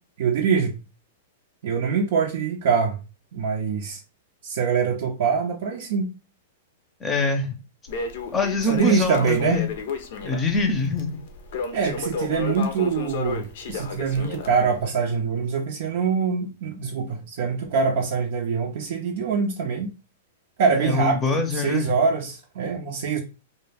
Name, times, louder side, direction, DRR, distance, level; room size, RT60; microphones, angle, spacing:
voice 1, 0.2-0.8 1.6-3.0 3.3-4.0 4.4-6.1 8.7-9.6 11.7-19.9 20.6-21.2 21.5-23.2, right 5 dB, 65° right, 0.5 m, -24 dB
voice 2, 7.0-7.6 8.3-9.7 10.2-11.2 20.7-21.9, left 3 dB, 20° left, 0.6 m, -24 dB
Crackle, 7.9-14.8, left 5 dB, 65° left, 0.5 m, -32 dB
2.2 x 2.0 x 3.3 m
hypercardioid pair, 110°, 0 cm